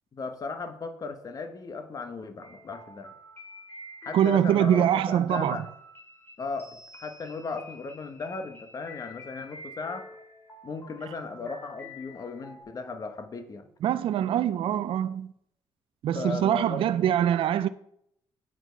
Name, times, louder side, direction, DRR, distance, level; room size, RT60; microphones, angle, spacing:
voice 1, 0.1-3.1 4.0-5.6 6.4-10.1 10.6-13.7 16.1-16.8, left 4 dB, 40° left, 1.2 m, -36 dB
sound 1, 2.4-12.6, left 1 dB, 25° left, 3.5 m, -48 dB
voice 2, 4.1-5.6 13.8-15.3 16.0-17.7, right 10 dB, 65° right, 0.4 m, -24 dB
9.0 x 7.6 x 4.6 m
cardioid pair, 105°, 10 cm